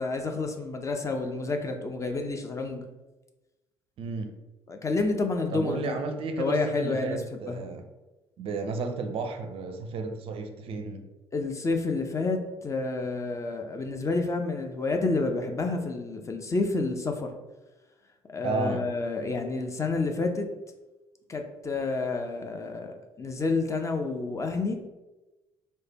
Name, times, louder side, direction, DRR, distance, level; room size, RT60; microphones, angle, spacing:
voice 1, 0.0-2.9 4.7-5.8 6.4-7.6 11.3-17.3 18.3-20.5 21.3-24.8, left 3 dB, 20° left, 5 dB, 0.4 m, -29 dB
voice 2, 4.0-4.3 5.5-7.8 8.4-11.1 18.4-18.9, right 3 dB, 45° right, 6 dB, 0.4 m, -33 dB
3.2 x 2.1 x 4.1 m, 1.1 s
figure-of-eight pair, 50°, 14 cm